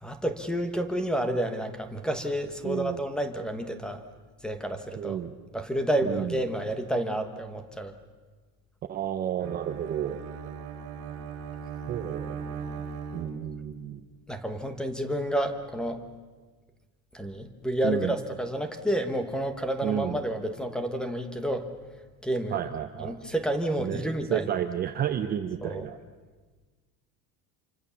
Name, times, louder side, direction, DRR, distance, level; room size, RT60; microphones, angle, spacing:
voice 1, 0.0-4.0 4.4-5.2 5.5-7.9 14.3-16.0 17.1-21.7 22.2-22.6 23.0-24.5 25.6-25.9, right 1 dB, ahead, 8 dB, 1.2 m, -30 dB
voice 2, 2.6-3.0 5.0-5.4 6.0-6.4 8.9-10.2 11.9-12.7 13.1-14.0 17.8-18.1 19.8-20.2 22.5-23.2 23.8-26.0, right 10 dB, 25° right, 7 dB, 0.7 m, -31 dB
Bowed string instrument, 9.4-13.8, right 6 dB, 45° right, 2.6 m, -38 dB
27.0 x 25.0 x 7.1 m, 1.4 s
cardioid pair, 180°, 40 cm